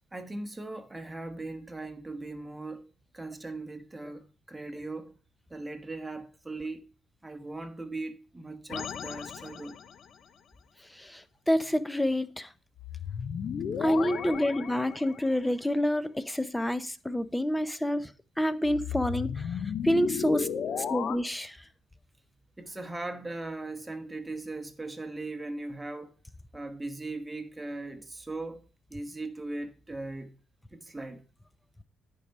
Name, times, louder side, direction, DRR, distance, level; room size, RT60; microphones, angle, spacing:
voice 1, 0.1-5.1 5.5-6.9 7.2-9.8 22.6-26.1 26.5-30.3 30.7-31.2, right 2 dB, 10° right, 1.4 m, -39 dB
sound 1, 8.7-10.1 12.8-15.4 18.6-21.2, left 7 dB, 60° left, 0.7 m, -35 dB
voice 2, 10.9-12.5 13.8-18.1 18.4-20.5 20.9-21.6, equal, 5° left, 0.7 m, -28 dB
10.0 x 4.8 x 5.4 m
cardioid pair, 90°, 0 cm